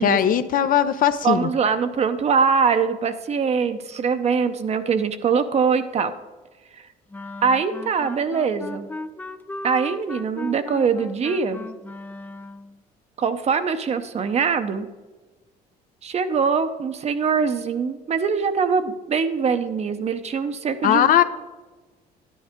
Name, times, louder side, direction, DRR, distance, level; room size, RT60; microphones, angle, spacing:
voice 1, 0.0-1.5 20.8-21.2, left 10 dB, 55° left, 11 dB, 0.6 m, -19 dB
voice 2, 1.2-6.1 6.7-6.9 7.4-8.9 9.6-11.7 13.2-14.9 16.0-21.1, right 6 dB, 40° right, 10 dB, 0.7 m, -23 dB
sound 1, 7.1-12.8, left 2 dB, 10° left, 0.4 m, -36 dB
11.0 x 10.0 x 3.7 m, 1.2 s
cardioid pair, 110°, 17 cm